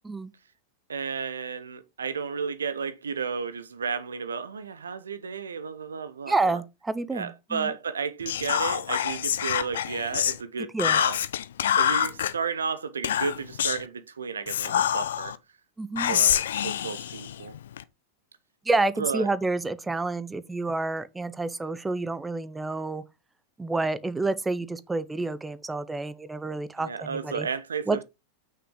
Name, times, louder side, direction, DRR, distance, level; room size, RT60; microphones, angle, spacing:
voice 1, 0.9-6.6 7.1-11.2 11.7-15.3 16.1-17.5 19.0-19.3 26.8-28.0, right 5 dB, 70° right, 0.6 m, -33 dB
voice 2, 6.3-7.7 10.7-11.0 15.8-16.2 18.7-23.0 23.6-27.5 27.9-28.0, right 3 dB, 10° right, 0.6 m, -29 dB
Whispering, 8.3-10.4 10.8-12.3 13.0-13.9 14.5-15.4 16.0-17.8, left 10 dB, 60° left, 0.5 m, -26 dB
6.0 x 5.5 x 3.7 m
figure-of-eight pair, 90°, 0 cm